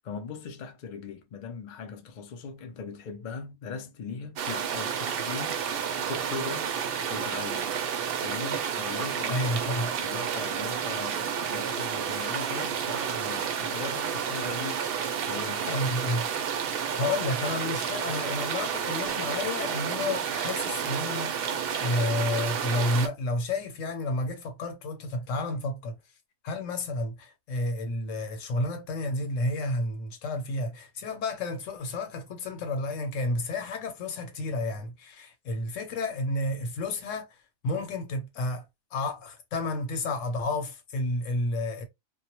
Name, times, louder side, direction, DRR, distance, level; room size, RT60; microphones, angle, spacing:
voice 1, 0.0-6.7 7.1-7.8 8.2-16.3, left 5 dB, 60° left, 0.5 m, -40 dB
sound 1, 4.4-23.1, right 7 dB, 60° right, 0.6 m, -30 dB
voice 2, 9.3-9.9 15.6-16.3 17.0-25.9 26.4-37.4 37.6-38.6 38.9-41.9, left 2 dB, 90° left, 1.1 m, -31 dB
2.2 x 2.1 x 2.8 m
omnidirectional pair, 1.3 m